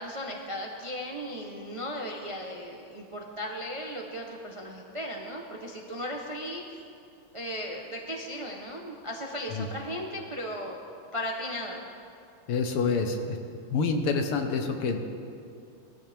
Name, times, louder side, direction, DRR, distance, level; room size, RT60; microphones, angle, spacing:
voice 1, 0.0-6.8 7.3-10.8 11.1-11.8, equal, 25° right, 0 dB, 0.6 m, -36 dB
voice 2, 12.5-13.4 13.7-15.0, left 4 dB, 90° left, 5 dB, 2.1 m, -27 dB
21.0 x 13.5 x 3.6 m, 2.5 s
omnidirectional pair, 2.4 m